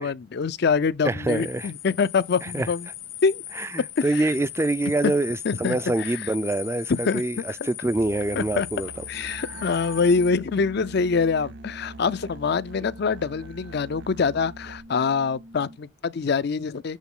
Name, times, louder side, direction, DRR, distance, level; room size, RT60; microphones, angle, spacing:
voice 1, 0.0-2.9 3.2-3.4 4.0-4.3 5.4-6.2 6.9-7.2 8.4-8.7 9.1-17.0, left 5 dB, 55° left, 0.4 m, -25 dB
voice 2, 1.0-1.7 2.5-2.7 3.6-8.9, right 2 dB, 15° right, 0.3 m, -25 dB
sound 1, 1.3-10.3, left 13 dB, 75° left, 1.6 m, -39 dB
Musical instrument, 7.9-14.8, right 4 dB, 60° right, 0.6 m, -45 dB
sound 2, 9.1-15.8, right 1 dB, 85° right, 1.7 m, -44 dB
8.2 x 4.0 x 3.6 m
head